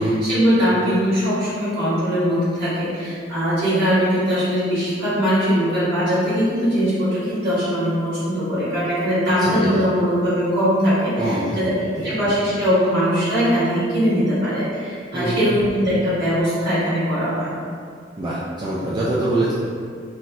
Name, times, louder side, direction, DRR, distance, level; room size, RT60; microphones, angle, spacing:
voice 1, 0.2-11.7 12.0-17.5, equal, 60° right, -12 dB, 1.4 m, -21 dB
voice 2, 9.2-9.7 11.2-11.7 12.0-12.1 15.1-15.4 18.2-19.5, right 1 dB, 25° right, -8 dB, 0.3 m, -24 dB
3.1 x 2.8 x 2.2 m, 2.2 s
head